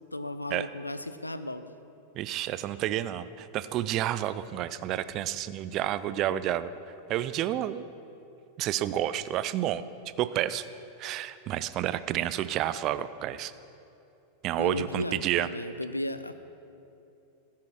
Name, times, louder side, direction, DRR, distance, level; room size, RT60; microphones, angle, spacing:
voice 1, 0.1-1.7 14.6-16.3, left 1 dB, 85° left, 12 dB, 0.4 m, -35 dB
voice 2, 2.2-6.7 7.1-7.8 8.6-9.8 10.2-10.7 11.0-13.5 14.4-15.5, right 12 dB, 35° right, 14 dB, 0.4 m, -30 dB
14.5 x 5.6 x 6.3 m, 2.8 s
figure-of-eight pair, 90°, 0 cm